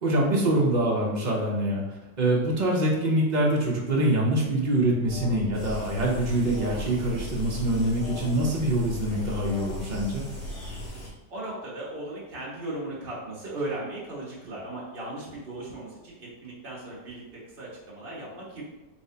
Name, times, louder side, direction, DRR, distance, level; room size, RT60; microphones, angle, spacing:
voice 1, 0.0-10.2, right 1 dB, 65° right, -3 dB, 0.4 m, -25 dB
Alarm, 5.0-10.9, left 3 dB, 65° left, 0.8 m, -39 dB
sound 1, 5.5-11.1, right 2 dB, 90° left, 1.9 m, -39 dB
voice 2, 11.3-18.6, right 2 dB, 35° right, -6 dB, 1.4 m, -37 dB
4.5 x 3.2 x 2.7 m, 1.1 s
omnidirectional pair, 1.9 m